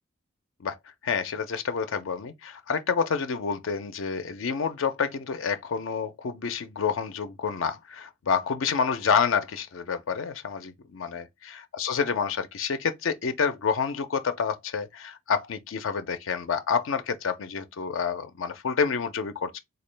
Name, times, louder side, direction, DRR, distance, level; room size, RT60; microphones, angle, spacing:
voice 1, 1.0-11.3 11.7-19.6, left 6 dB, 80° left, 0.5 m, -28 dB
3.7 x 2.3 x 3.2 m
head